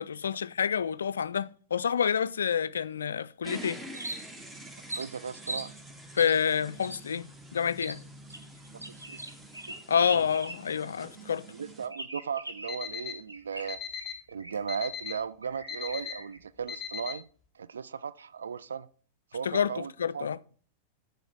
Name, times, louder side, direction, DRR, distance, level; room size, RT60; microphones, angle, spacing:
voice 1, 0.0-3.8 6.1-8.0 9.9-11.5 19.4-20.4, left 7 dB, 70° left, 0.3 m, -28 dB
sound 1, 3.4-11.9, right 1 dB, 10° right, 1.3 m, -47 dB
sound 2, 3.9-4.5 4.9-5.7 6.2-6.4 6.8-7.0 7.8-8.0 8.3-10.8 11.1-11.2 11.9-12.8 13.3-14.7 15.0-15.1 15.4-16.4, right 1 dB, 85° right, 1.1 m, -41 dB
voice 2, 4.9-5.7 8.9-9.2 11.5-13.8 14.3-17.2 17.5-18.9 19.3-20.3, right 6 dB, 70° right, 0.4 m, -36 dB
Alarm, 12.7-13.1 13.7-14.1 14.7-15.1 15.7-16.1 16.7-17.1, left 8 dB, 15° left, 1.3 m, -36 dB
7.8 x 7.0 x 4.5 m
figure-of-eight pair, 90°, 0 cm